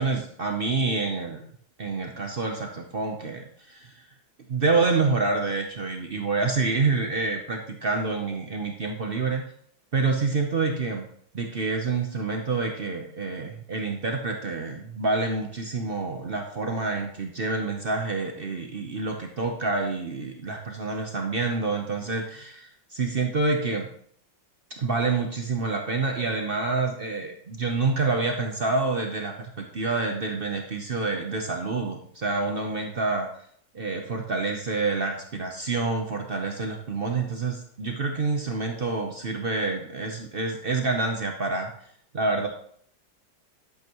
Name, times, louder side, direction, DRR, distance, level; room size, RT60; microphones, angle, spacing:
voice 1, 0.0-1.4 1.8-4.0 4.5-9.4 9.9-11.1 11.3-23.9 24.8-33.3 33.7-41.7 42.1-42.5, right 3 dB, 65° right, 3 dB, 0.5 m, -27 dB
11.0 x 8.1 x 3.0 m, 0.64 s
omnidirectional pair, 2.1 m